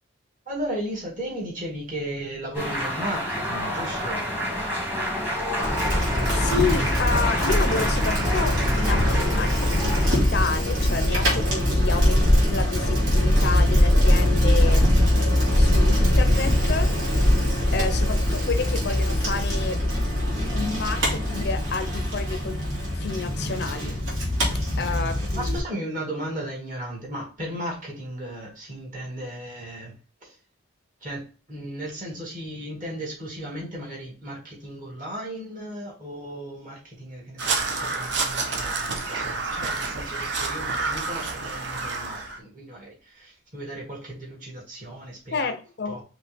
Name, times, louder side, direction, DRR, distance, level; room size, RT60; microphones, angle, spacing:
voice 1, 0.5-4.3 11.7-12.0 24.7-30.4 31.0-45.5 45.9-46.0, right 1 dB, 40° right, 2.2 m, -35 dB
sound 1, 2.5-10.2, equal, 10° right, 1.3 m, -28 dB
Bicycle, 5.6-25.6, left 1 dB, 75° right, 2.2 m, -22 dB
voice 2, 5.9-14.9 15.5-19.8 20.3-22.6 22.9-24.0 24.8-25.5 45.3-46.0, left 4 dB, 50° left, 0.5 m, -30 dB
Crow, 37.4-42.4, right 3 dB, 55° right, 0.8 m, -29 dB
5.0 x 3.1 x 3.4 m
head